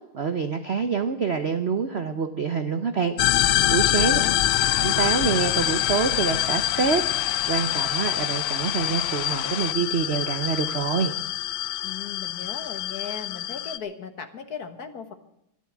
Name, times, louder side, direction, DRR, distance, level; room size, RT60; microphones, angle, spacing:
voice 1, 0.1-4.2 4.8-11.1, right 6 dB, 65° right, 9 dB, 0.6 m, -26 dB
sound 1, 3.2-13.8, left 13 dB, 85° left, 1.6 m, -25 dB
voice 2, 3.8-4.4 11.8-15.1, left 6 dB, 50° left, 9 dB, 1.6 m, -37 dB
Domestic sounds home sounds, 4.2-9.7, left 11 dB, 70° left, 0.9 m, -35 dB
13.5 x 12.0 x 7.2 m, 0.81 s
omnidirectional pair, 2.4 m